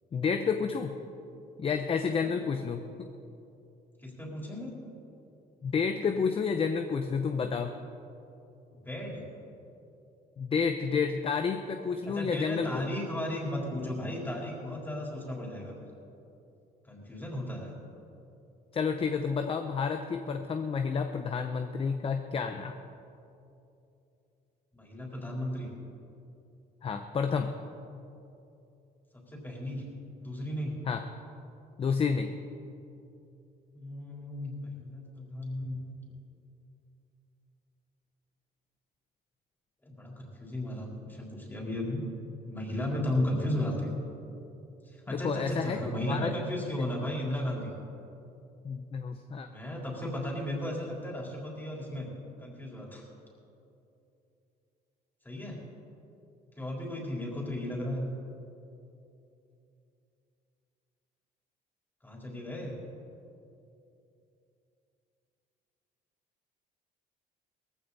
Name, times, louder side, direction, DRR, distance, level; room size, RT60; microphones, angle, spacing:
voice 1, 0.1-1.0 1.6-2.9 5.6-7.7 10.4-12.8 18.7-22.7 26.8-27.5 30.9-31.0 31.8-32.3 45.1-45.8 46.1-46.3 48.6-49.5, left 5 dB, 35° left, 7 dB, 0.7 m, -30 dB
voice 2, 4.0-4.7 8.8-9.2 12.0-15.8 16.8-17.7 24.7-25.7 29.3-29.8 30.2-30.8 33.7-35.8 39.8-42.0 42.4-43.9 44.8-47.7 49.5-52.1 52.4-53.0 55.2-55.6 56.6-58.1 62.0-62.8, left 1 dB, 10° left, -2 dB, 3.8 m, -35 dB
18.0 x 15.0 x 4.1 m, 2.7 s
cardioid pair, 110°, 17 cm